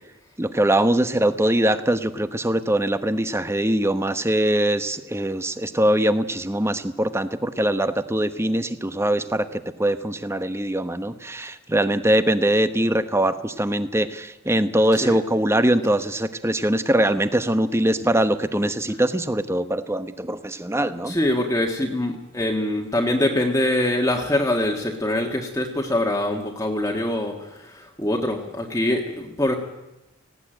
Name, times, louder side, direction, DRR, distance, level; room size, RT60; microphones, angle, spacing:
voice 1, 0.4-21.2, right 1 dB, 15° right, 11 dB, 1.0 m, -22 dB
voice 2, 21.0-29.6, left 1 dB, 15° left, 1 dB, 1.7 m, -24 dB
18.5 x 16.5 x 9.0 m, 0.97 s
head